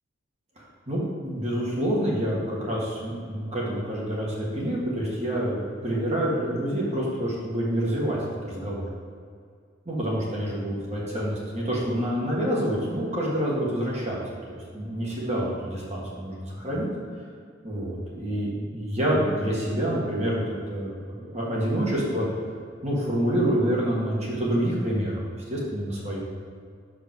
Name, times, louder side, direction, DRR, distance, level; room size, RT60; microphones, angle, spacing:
voice 1, 0.6-8.8 9.8-14.2 14.5-16.9 17.6-22.3 22.8-25.2 25.5-26.2, equal, 35° right, -5 dB, 1.7 m, -27 dB
6.2 x 5.1 x 6.1 m, 2.2 s
head